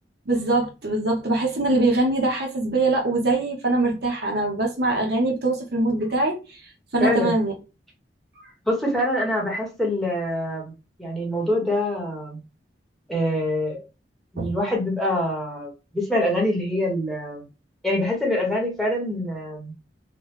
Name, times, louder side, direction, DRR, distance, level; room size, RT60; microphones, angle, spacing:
voice 1, 0.3-6.6 6.9-7.5 14.4-14.5, right 2 dB, 60° right, 0.9 m, -23 dB
voice 2, 7.0-7.3 8.7-10.7 11.0-12.4 13.1-13.8 14.3-17.4 17.8-19.7, left 1 dB, ahead, 0.9 m, -25 dB
3.1 x 2.1 x 3.1 m
head